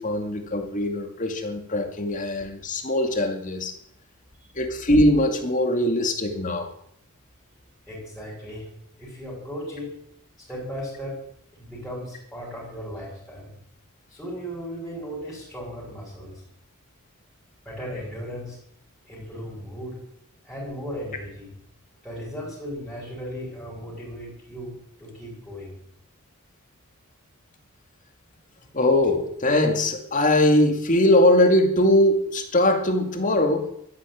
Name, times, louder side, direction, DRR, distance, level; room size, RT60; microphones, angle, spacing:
voice 1, 0.0-3.7 4.6-6.7 28.7-33.7, left 1 dB, 35° left, 5 dB, 2.4 m, -21 dB
voice 2, 7.9-8.7 9.0-9.9 10.5-11.2 11.6-13.5 14.1-16.3 17.6-18.6 19.0-20.0 20.4-21.5 22.0-25.8, equal, ahead, -7 dB, 6.2 m, -36 dB
13.0 x 11.0 x 8.7 m, 0.70 s
head